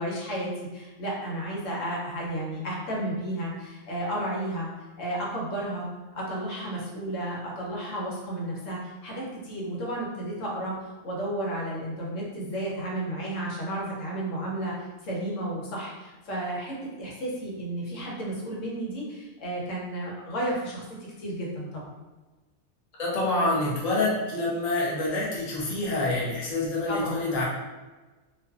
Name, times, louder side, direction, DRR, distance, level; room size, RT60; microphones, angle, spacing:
voice 1, 0.0-4.7 5.0-5.9 6.1-20.8 21.2-21.8 26.9-27.2, right 1 dB, 80° left, -4 dB, 1.1 m, -32 dB
voice 2, 23.0-27.5, left 2 dB, 45° left, -5 dB, 0.5 m, -27 dB
2.5 x 2.2 x 2.3 m, 1.2 s
omnidirectional pair, 1.3 m